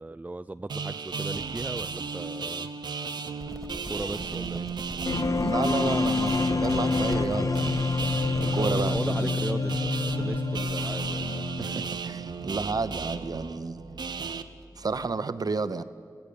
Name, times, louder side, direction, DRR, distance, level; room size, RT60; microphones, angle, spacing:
voice 1, 0.0-2.7 3.9-4.7 8.4-11.3, right 2 dB, 20° right, 0.4 m, -37 dB
sound 1, 0.7-14.4, right 5 dB, 90° right, 0.9 m, -35 dB
sound 2, 3.4-15.2, equal, 5° left, 1.4 m, -43 dB
sound 3, 5.1-12.1, left 3 dB, 50° left, 0.7 m, -27 dB
voice 2, 5.4-7.9 8.5-9.4 11.6-14.1 14.8-15.8, right 4 dB, 60° right, 0.9 m, -31 dB
22.0 x 15.5 x 8.8 m
cardioid pair, 55°, 7 cm